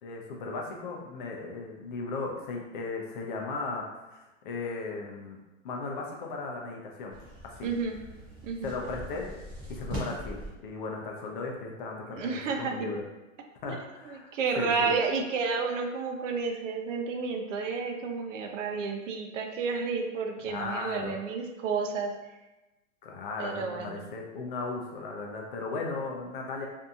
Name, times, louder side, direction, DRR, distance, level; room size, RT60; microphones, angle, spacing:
voice 1, 0.0-5.4 5.6-7.2 7.4-7.7 8.6-9.3 9.7-13.0 13.6-14.3 14.6-14.9 20.4-21.1 23.0-26.7, left 3 dB, 40° left, 0 dB, 0.5 m, -36 dB
sound 1, 7.1-10.5, equal, 20° right, 0.3 m, -40 dB
voice 2, 7.6-8.0 8.4-8.7 12.1-12.9 13.7-13.8 14.0-22.1 23.4-24.0, right 4 dB, 65° right, 3 dB, 0.6 m, -31 dB
2.7 x 2.5 x 2.3 m, 1.0 s
hypercardioid pair, 140°, 40 cm